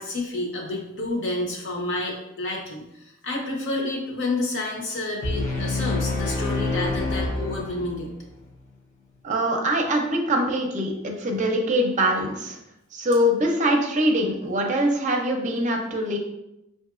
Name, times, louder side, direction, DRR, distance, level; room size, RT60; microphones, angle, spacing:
voice 1, 0.0-8.1, left 2 dB, 65° left, -2 dB, 1.0 m, -29 dB
sound 1, 5.2-8.2, left 2 dB, 40° left, 0.5 m, -27 dB
voice 2, 9.2-12.6 12.9-16.2, equal, 40° right, 2 dB, 0.6 m, -23 dB
5.6 x 2.6 x 2.4 m, 0.88 s
head